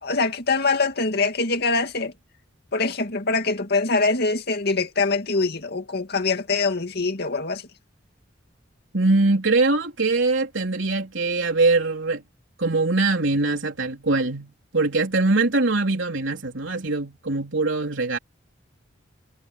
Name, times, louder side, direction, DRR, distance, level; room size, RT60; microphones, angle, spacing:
voice 1, 0.0-2.1 2.7-7.6, left 3 dB, 55° left, 2.2 m, -23 dB
voice 2, 8.9-12.2 12.6-18.2, right 3 dB, 70° right, 3.7 m, -22 dB
head